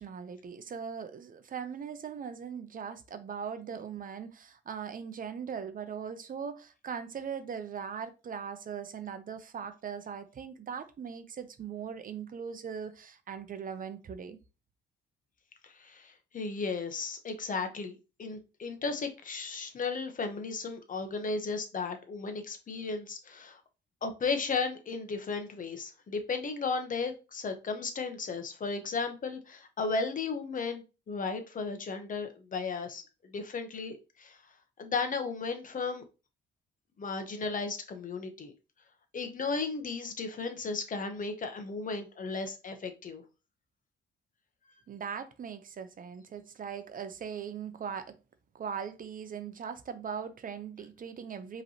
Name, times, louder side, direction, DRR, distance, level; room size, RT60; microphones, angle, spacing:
voice 1, 0.0-14.4 44.9-48.2 48.5-51.6, right 7 dB, 45° right, 0.6 m, -40 dB
voice 2, 15.6-23.6 24.0-34.4 34.8-36.0 37.0-38.5 39.1-43.2, left 4 dB, 45° left, 0.9 m, -35 dB
5.0 x 3.1 x 2.8 m
cardioid pair, 90°, 20 cm